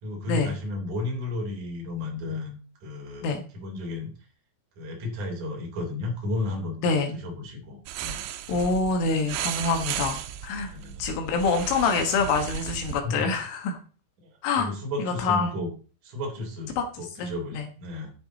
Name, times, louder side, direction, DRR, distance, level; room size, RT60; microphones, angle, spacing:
voice 1, 0.0-4.1 4.8-8.3 10.7-11.0 13.0-13.3 14.2-15.7 16.0-18.1, left 2 dB, 40° right, 0 dB, 5.0 m, -33 dB
voice 2, 6.8-7.2 8.5-10.7 11.0-13.8 14.4-14.7 15.0-15.5 16.8-17.7, left 4 dB, 80° left, 4 dB, 3.9 m, -26 dB
sound 1, 7.9-13.0, right 11 dB, 90° right, 3.6 m, -35 dB
11.5 x 10.5 x 4.1 m, 0.37 s
omnidirectional pair, 5.6 m